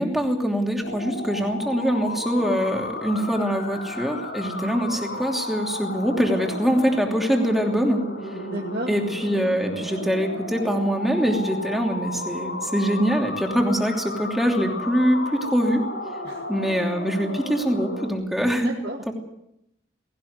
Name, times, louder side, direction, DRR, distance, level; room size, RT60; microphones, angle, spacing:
voice 1, 0.0-8.0 8.9-15.8 16.5-18.7 19.1-19.2, equal, ahead, 1 dB, 2.9 m, -23 dB
sound 1, 0.8-18.1, left 1 dB, 65° left, 4.8 m, -33 dB
voice 2, 8.5-9.0 16.2-16.4 18.6-19.1, right 1 dB, 55° right, -1 dB, 2.3 m, -32 dB
19.5 x 17.5 x 8.1 m, 0.80 s
head